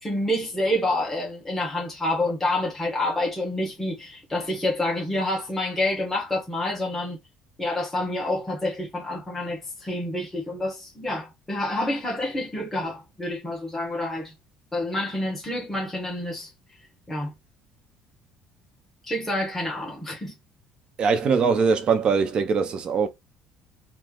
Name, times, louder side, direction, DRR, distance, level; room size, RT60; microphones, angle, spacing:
voice 1, 0.0-7.2 7.6-14.3 14.7-16.5 17.1-17.3 19.1-20.3, left 1 dB, 10° left, 1.2 m, -28 dB
voice 2, 21.0-23.1, right 5 dB, 45° right, 0.6 m, -22 dB
3.1 x 2.0 x 3.7 m
cardioid pair, 115°, 2 cm